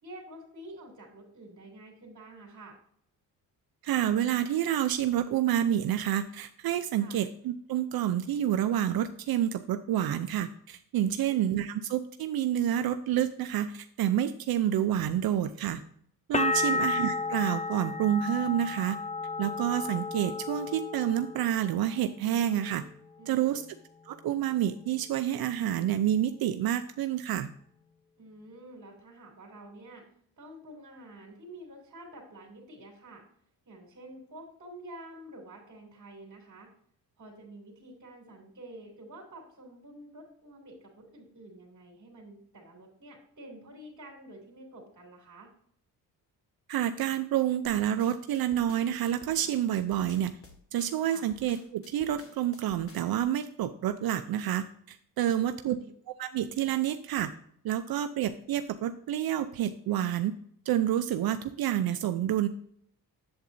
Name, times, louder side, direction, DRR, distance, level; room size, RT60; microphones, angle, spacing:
voice 1, 0.0-2.8 6.9-7.2 11.1-11.3 16.5-16.8 23.2-23.7 28.2-30.0 30.4-33.2 33.6-36.7 37.2-45.5 51.1-51.2 55.2-55.9, right 1 dB, 50° right, -2 dB, 2.8 m, -49 dB
voice 2, 3.8-15.8 16.3-19.0 19.4-22.8 23.3-23.6 24.1-27.5 46.7-50.3 50.7-55.8 56.2-57.3 57.6-60.3 60.7-62.5, right 11 dB, 70° right, 9 dB, 0.6 m, -28 dB
sound 1, 16.3-22.0 22.3-23.0, left 3 dB, 20° left, 0.5 m, -33 dB
sound 2, 47.6-53.2, left 3 dB, 35° left, 1.8 m, -53 dB
7.9 x 7.9 x 2.6 m, 0.66 s
cardioid pair, 80°, 38 cm